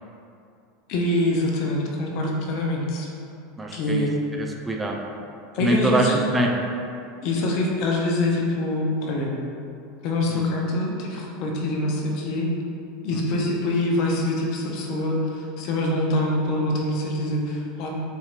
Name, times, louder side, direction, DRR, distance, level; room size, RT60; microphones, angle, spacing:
voice 1, 0.9-3.1 3.7-4.1 5.5-6.1 7.2-9.4 10.0-12.5 13.0-17.9, left 1 dB, 55° left, -1 dB, 0.5 m, -25 dB
voice 2, 3.6-5.2 5.6-6.6 10.3-10.5 13.3-13.4, right 1 dB, 15° right, 0 dB, 0.4 m, -25 dB
4.3 x 2.7 x 2.4 m, 2.6 s
figure-of-eight pair, 80°, 0 cm